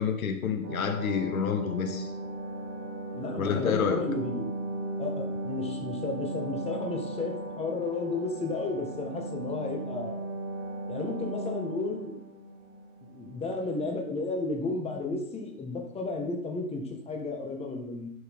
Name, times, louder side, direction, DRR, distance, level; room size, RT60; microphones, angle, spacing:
voice 1, 0.0-2.1 3.4-4.0, left 6 dB, 70° left, 7 dB, 1.3 m, -28 dB
sound 1, 0.6-13.7 14.0-14.1, right 2 dB, 55° right, 3.2 m, -37 dB
voice 2, 3.1-4.4 5.0-10.2 10.9-12.1 13.1-18.1, left 3 dB, 15° left, 2 dB, 1.7 m, -33 dB
11.5 x 5.8 x 3.8 m, 0.73 s
hypercardioid pair, 115°, 43 cm